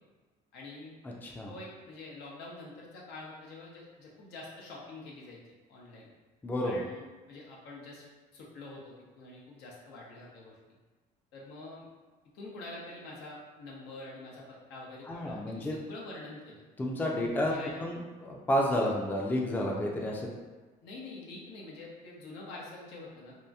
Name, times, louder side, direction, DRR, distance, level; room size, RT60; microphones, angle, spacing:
voice 1, 0.5-1.0 1.5-5.4 5.7-6.1 6.6-7.0 7.3-8.0 8.3-10.6 11.3-11.9 12.3-16.6 17.3-17.9 20.8-23.4, left 2 dB, 85° left, -4 dB, 0.7 m, -46 dB
voice 2, 1.2-1.5 6.4-6.8 15.1-15.8 16.8-17.5 17.8-20.5, equal, 10° left, -1 dB, 0.4 m, -31 dB
2.8 x 2.5 x 2.3 m, 1.3 s
cardioid pair, 110°, 17 cm